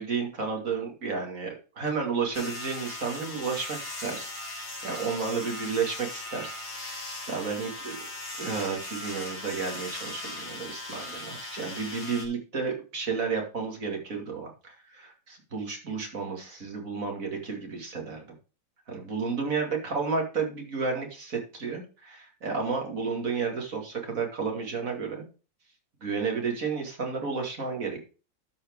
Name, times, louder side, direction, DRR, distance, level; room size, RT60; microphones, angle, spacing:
voice 1, 0.0-8.0 8.4-18.3 18.9-25.3 26.0-28.0, right 5 dB, 45° right, 1 dB, 2.8 m, -32 dB
sound 1, 2.3-12.3, left 2 dB, 75° left, 3.7 m, -39 dB
12.5 x 4.9 x 4.7 m, 0.34 s
omnidirectional pair, 2.0 m